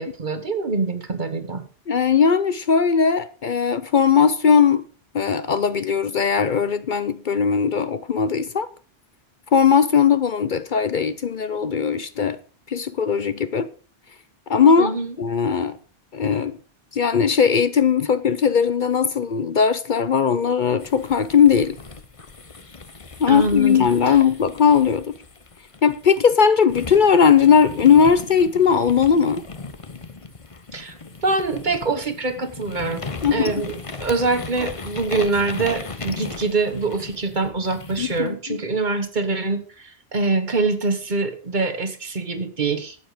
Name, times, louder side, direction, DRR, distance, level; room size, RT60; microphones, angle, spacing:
voice 1, 0.0-1.6 14.8-15.1 23.3-23.9 30.7-31.0 31.2-33.0 33.3-43.0, right 3 dB, 50° right, 1.5 m, -24 dB
voice 2, 1.9-4.8 5.1-8.7 9.5-12.4 12.7-13.7 14.5-14.9 15.2-15.8 16.1-16.6 16.9-21.8 23.2-25.1 25.8-29.4 33.2-33.5 38.0-38.6, left 6 dB, 55° left, 0.8 m, -18 dB
sound 1, 20.8-26.2 26.7-38.3, left 3 dB, 35° left, 1.0 m, -37 dB
12.0 x 8.6 x 5.0 m
omnidirectional pair, 1.1 m